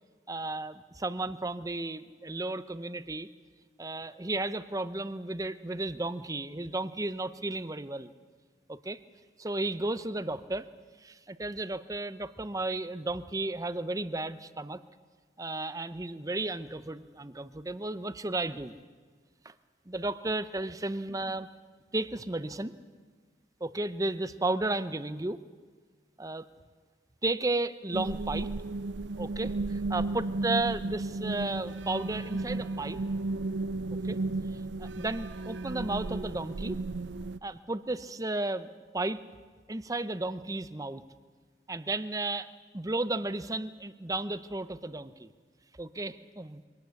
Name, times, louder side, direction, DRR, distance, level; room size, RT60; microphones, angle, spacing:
voice 1, 0.3-3.3 3.8-8.1 8.7-9.0 9.4-10.7 11.0-14.8 15.4-18.8 19.4-19.5 19.9-21.5 21.9-22.7 23.6-25.4 26.2-26.5 27.2-28.5 29.2-33.0 34.0-34.2 34.5-36.8 37.4-38.7 38.9-39.2 39.7-41.0 41.7-45.3 45.8-46.6, right 2 dB, 20° right, 13 dB, 0.7 m, -33 dB
sound 1, 27.9-37.4, right 2 dB, 85° right, 0.6 m, -34 dB
23.0 x 18.5 x 8.2 m, 1.5 s
head